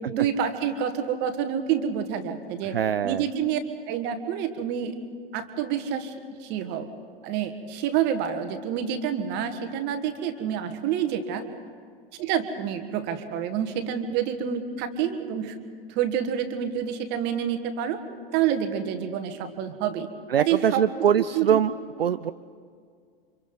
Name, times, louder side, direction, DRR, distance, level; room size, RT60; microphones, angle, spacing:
voice 1, 0.1-2.8 3.0-3.6 3.9-5.0 5.3-6.1 6.4-6.9 7.2-11.4 12.2-15.6 16.0-18.0 18.3-20.1 20.4-20.8 21.3-21.6, right 9 dB, 35° right, 8 dB, 1.9 m, -28 dB
voice 2, 2.6-3.2 20.3-21.7 22.0-22.3, right 8 dB, 75° right, 13 dB, 0.5 m, -23 dB
30.0 x 25.5 x 4.1 m, 2.1 s
figure-of-eight pair, 95°, 30 cm